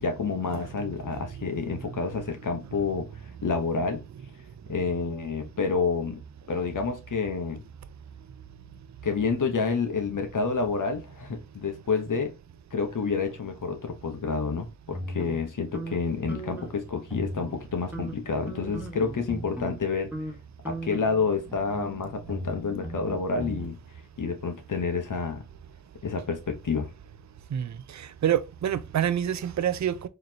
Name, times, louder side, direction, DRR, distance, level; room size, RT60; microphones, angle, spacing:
voice 1, 0.0-3.1 3.4-4.0 4.7-6.2 6.5-7.6 9.0-12.3 12.7-20.1 20.6-23.8 24.2-25.4 26.0-26.9, left 4 dB, 85° left, 1.0 m, -29 dB
sound 1, 14.9-16.8 17.1-17.7 17.9-19.8 20.1-20.4 20.6-23.7, right 1 dB, 5° right, 1.0 m, -38 dB
voice 2, 27.5-30.1, right 10 dB, 65° right, 0.4 m, -27 dB
4.0 x 3.2 x 2.7 m
wide cardioid pair, 60°, 31 cm